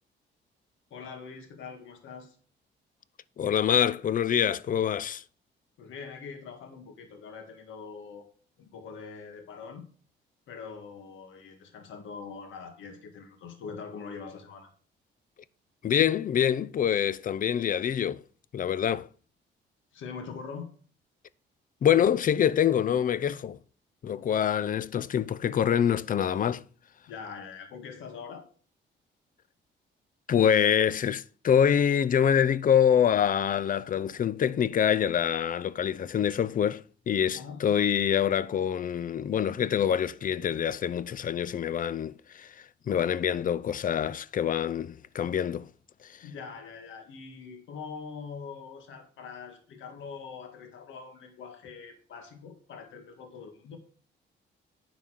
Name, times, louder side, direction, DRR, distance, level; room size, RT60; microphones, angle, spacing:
voice 1, 0.9-2.4 5.8-8.3 8.6-9.9 10.5-14.7 19.9-20.7 27.1-28.4 37.3-37.7 46.2-53.8, left 5 dB, 80° left, 1.8 m, -43 dB
voice 2, 3.4-5.2 15.8-18.2 18.5-19.1 21.8-23.6 24.0-26.6 30.3-45.7 46.0-46.3, left 9 dB, 45° left, 0.5 m, -25 dB
10.0 x 4.1 x 6.4 m
cardioid pair, 90°, 20 cm